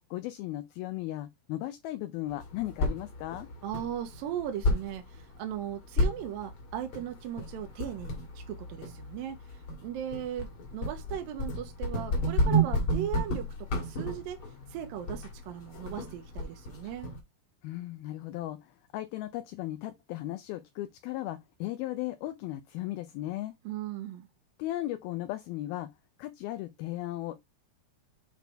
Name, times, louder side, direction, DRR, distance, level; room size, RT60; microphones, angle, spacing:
voice 1, 0.1-3.5 17.6-23.5 24.6-25.9 26.2-27.4, left 15 dB, 80° left, 2.4 m, -36 dB
sound 1, 2.3-17.2, equal, 40° left, 2.2 m, -33 dB
voice 2, 3.6-17.1 23.7-24.3, right 10 dB, 75° right, 2.4 m, -38 dB
8.3 x 4.1 x 3.4 m
omnidirectional pair, 4.6 m